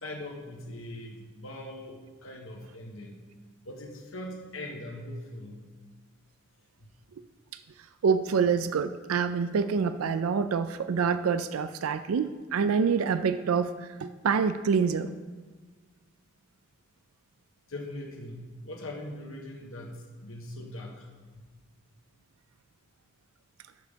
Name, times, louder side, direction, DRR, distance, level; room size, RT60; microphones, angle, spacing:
voice 1, 0.0-3.2 3.6-5.6 6.8-6.9 17.7-21.1 21.3-21.4, left 1 dB, 75° left, 1 dB, 1.3 m, -41 dB
voice 2, 8.0-13.7 14.0-15.1, right 6 dB, 90° right, 12 dB, 0.4 m, -26 dB
9.4 x 6.5 x 5.1 m, 1.4 s
head